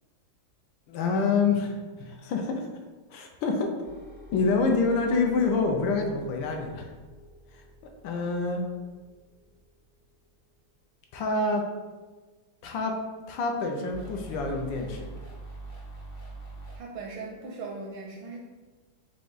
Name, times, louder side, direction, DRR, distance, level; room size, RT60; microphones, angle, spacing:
voice 1, 0.9-2.7 3.1-3.7 4.3-6.9 7.5-7.6 8.0-8.6 11.1-11.6 12.6-12.9 13.3-15.1, left 4 dB, 75° left, 3 dB, 1.3 m, -27 dB
sound 1, 3.8-10.2 13.9-16.8, right 2 dB, 55° left, 0.6 m, -46 dB
voice 2, 16.7-18.4, right 3 dB, 80° right, -2 dB, 1.5 m, -39 dB
4.9 x 2.3 x 3.9 m, 1.3 s
omnidirectional pair, 2.2 m